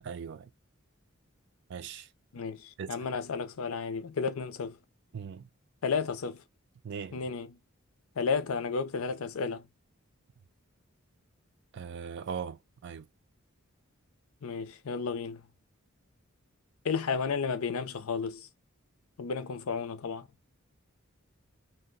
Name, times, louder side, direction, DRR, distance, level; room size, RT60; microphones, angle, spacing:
voice 1, 0.0-0.5 1.7-2.1 2.8-3.0 5.1-5.5 6.8-7.2 11.7-13.1, right 6 dB, 55° right, 0.3 m, -39 dB
voice 2, 2.3-4.8 5.8-6.4 7.1-7.6 8.2-9.6 14.4-15.4 16.8-18.5 19.2-20.3, left 5 dB, 85° left, 0.5 m, -32 dB
2.8 x 2.1 x 3.8 m
head